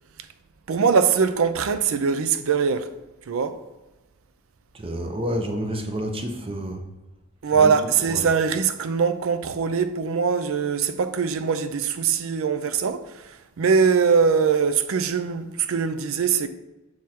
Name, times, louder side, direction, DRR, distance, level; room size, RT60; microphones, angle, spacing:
voice 1, 0.7-2.9 3.3-3.6 7.4-13.3 13.6-16.5, right 6 dB, 70° right, 0.4 m, -22 dB
voice 2, 4.7-6.8 7.5-7.7 8.0-8.3, equal, 25° right, 0.7 m, -29 dB
6.3 x 3.6 x 4.3 m
head